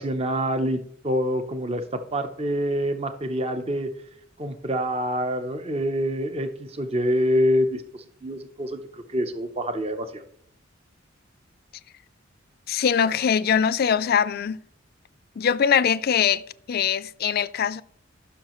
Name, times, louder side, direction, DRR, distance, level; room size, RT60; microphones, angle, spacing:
voice 1, 0.0-1.8 2.1-3.9 4.4-10.2, equal, 30° right, 0.7 m, -26 dB
voice 2, 12.7-14.6 15.4-16.4 16.7-17.8, left 7 dB, 50° left, 0.4 m, -22 dB
15.0 x 6.3 x 3.0 m
head